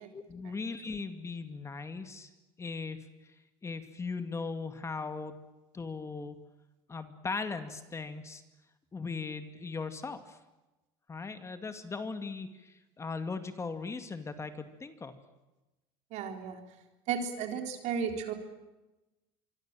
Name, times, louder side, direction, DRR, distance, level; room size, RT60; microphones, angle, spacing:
voice 1, 0.1-2.3 2.6-3.0 3.2-3.3 3.6-5.4 5.7-6.4 6.9-8.4 8.9-10.4 11.1-15.1, left 4 dB, 20° left, 9 dB, 2.3 m, -38 dB
voice 2, 16.1-16.6 17.1-18.3, right 7 dB, 65° right, 5 dB, 3.9 m, -34 dB
25.0 x 24.0 x 7.6 m, 1.1 s
supercardioid pair, 100°, 13 cm